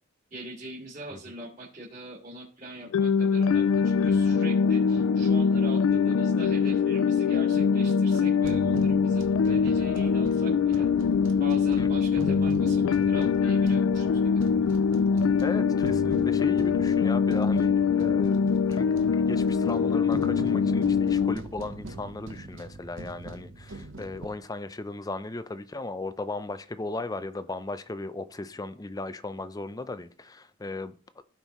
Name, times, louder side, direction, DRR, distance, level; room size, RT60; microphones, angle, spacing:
voice 1, 0.3-10.9 11.4-14.2, right 1 dB, 35° right, 2.8 m, -42 dB
sound 1, 2.9-21.4, left 6 dB, 80° left, 0.3 m, -23 dB
sound 2, 8.4-24.3, right 2 dB, 65° right, 1.0 m, -40 dB
voice 2, 15.4-31.2, left 2 dB, 20° left, 0.5 m, -36 dB
16.0 x 5.4 x 3.1 m
head